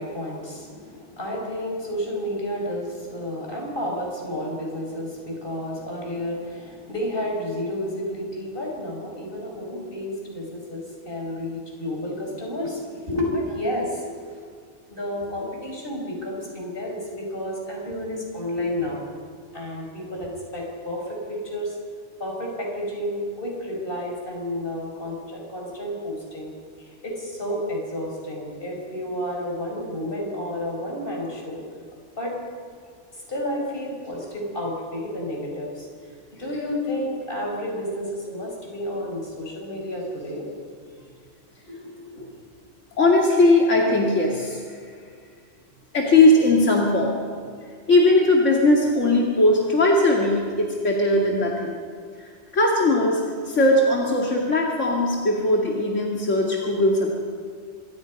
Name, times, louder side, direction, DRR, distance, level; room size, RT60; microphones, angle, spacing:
voice 1, 0.0-14.4 14.9-19.1 19.5-21.8 22.2-26.5 26.8-31.6 32.2-32.3 33.1-36.1 36.4-40.4 41.7-42.2, left 1 dB, 50° left, -1 dB, 5.7 m, -31 dB
voice 2, 43.0-44.6 45.9-47.2 47.9-51.7 52.5-57.1, left 2 dB, 85° left, -2 dB, 2.7 m, -19 dB
26.5 x 23.0 x 5.4 m, 2.1 s
omnidirectional pair, 1.2 m